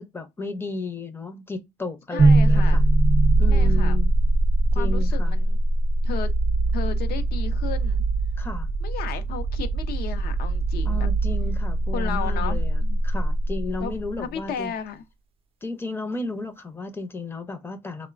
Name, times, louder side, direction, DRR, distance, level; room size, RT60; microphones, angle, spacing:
voice 1, 0.0-2.8 3.4-4.1 4.7-5.4 8.4-8.7 10.8-14.7 15.6-18.1, left 3 dB, 15° left, 0.5 m, -34 dB
voice 2, 2.1-2.9 3.5-4.0 4.7-5.6 6.0-6.3 6.7-8.0 8.8-11.1 11.9-13.0 13.8-13.9 14.2-15.0, left 7 dB, 65° left, 0.5 m, -34 dB
sound 1, 2.2-14.2, right 2 dB, 35° right, 0.5 m, -21 dB
3.0 x 2.1 x 2.4 m
cardioid pair, 110°, 17 cm